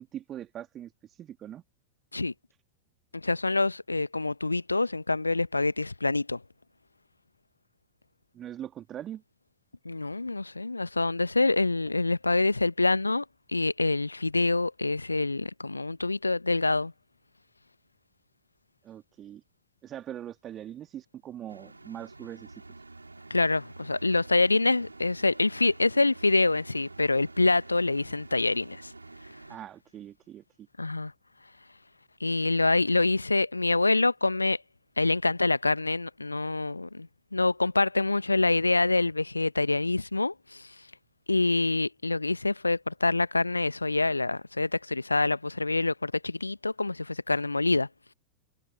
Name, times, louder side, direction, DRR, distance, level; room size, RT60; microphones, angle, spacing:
voice 1, 0.0-1.6 8.3-9.2 18.8-19.4 19.8-22.6 29.5-30.7, right 11 dB, 30° right, 2.2 m, -42 dB
voice 2, 3.1-6.4 9.8-16.9 23.3-28.9 30.8-31.1 32.2-34.6 35.0-40.7 41.3-47.9, left 3 dB, 80° left, 1.0 m, -26 dB
sound 1, 21.5-29.6, right 3 dB, 80° right, 4.8 m, -48 dB
figure-of-eight pair, 90°, 0 cm